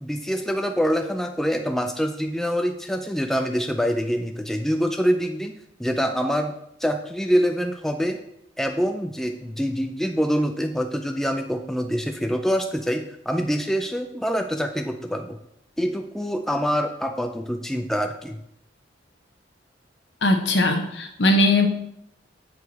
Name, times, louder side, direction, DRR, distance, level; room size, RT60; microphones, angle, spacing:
voice 1, 0.0-5.5 5.8-6.5 6.8-8.2 8.6-15.4 15.8-18.4, equal, ahead, 5 dB, 0.3 m, -25 dB
voice 2, 20.2-21.7, left 1 dB, 65° left, 5 dB, 1.0 m, -19 dB
8.0 x 4.5 x 4.1 m, 0.77 s
head